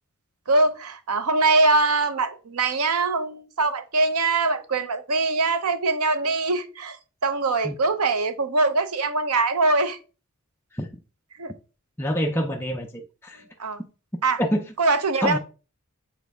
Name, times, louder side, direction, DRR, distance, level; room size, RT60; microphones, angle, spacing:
voice 1, 0.5-10.0 11.4-11.5 13.6-13.8 14.2-14.4 14.8-15.4, right 3 dB, 85° right, 0.8 m, -23 dB
voice 2, 12.0-13.4 14.4-14.6 15.2-15.4, equal, 10° left, 0.5 m, -26 dB
7.3 x 4.1 x 3.5 m
head